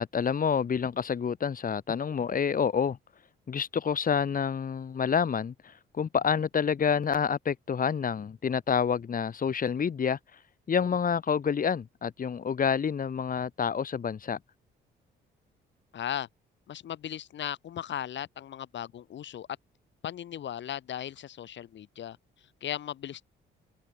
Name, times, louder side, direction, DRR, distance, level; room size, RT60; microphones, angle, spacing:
voice 1, 0.0-3.0 3.5-10.2 10.7-14.4, left 7 dB, 45° left, 3.1 m, -28 dB
voice 2, 15.9-16.3 16.7-19.5 20.0-23.3, left 10 dB, 65° left, 3.0 m, -37 dB
cardioid pair, 90°, 20 cm